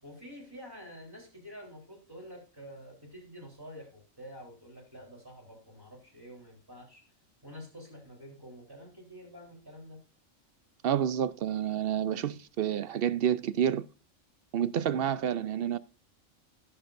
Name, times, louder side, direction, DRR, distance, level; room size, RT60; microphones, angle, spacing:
voice 1, 0.0-7.0 7.4-10.0, equal, 15° right, 3.8 m, -48 dB
voice 2, 10.8-13.8 14.5-15.8, right 9 dB, 60° right, 0.7 m, -29 dB
17.5 x 7.1 x 2.6 m
omnidirectional pair, 1.4 m